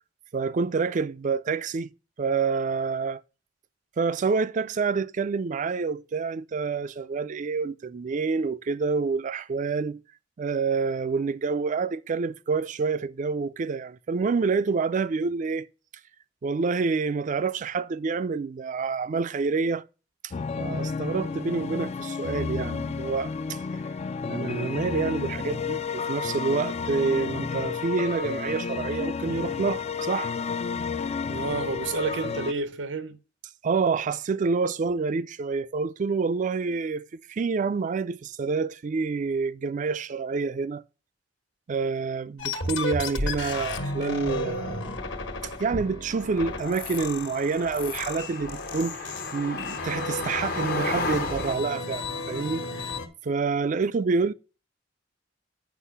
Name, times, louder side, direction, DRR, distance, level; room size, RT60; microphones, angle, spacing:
voice 1, 0.3-1.9 2.2-3.2 4.0-10.0 10.4-15.7 16.4-19.8 20.6-23.6 24.3-30.3 33.6-40.8 41.7-44.9 45.4-52.9 53.2-54.3, right 4 dB, 45° right, 0.4 m, -27 dB
sound 1, 20.3-32.5, left 5 dB, 35° left, 0.3 m, -31 dB
voice 2, 31.3-33.2 53.6-53.8, right 4 dB, 80° right, 0.8 m, -30 dB
sound 2, 42.4-53.1, left 2 dB, 75° left, 1.5 m, -33 dB
sound 3, 46.1-51.6, left 3 dB, 55° left, 0.9 m, -34 dB
8.3 x 5.3 x 5.7 m
head